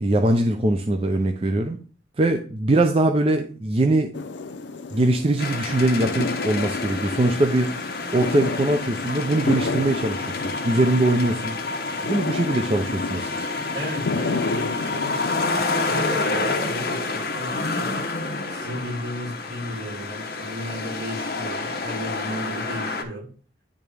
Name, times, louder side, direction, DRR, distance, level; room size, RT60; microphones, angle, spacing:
voice 1, 0.0-1.8 2.2-4.1 4.9-11.6 12.0-13.5, right 2 dB, 30° right, 5 dB, 0.5 m, -22 dB
sound 1, 4.1-15.5, left 3 dB, 75° left, 0.5 m, -31 dB
sound 2, 5.4-23.0, left 3 dB, 55° left, 0.9 m, -29 dB
voice 2, 13.7-15.1 15.5-17.9 18.5-23.3, equal, 75° right, -2 dB, 2.6 m, -34 dB
10.5 x 3.6 x 3.4 m, 0.42 s
head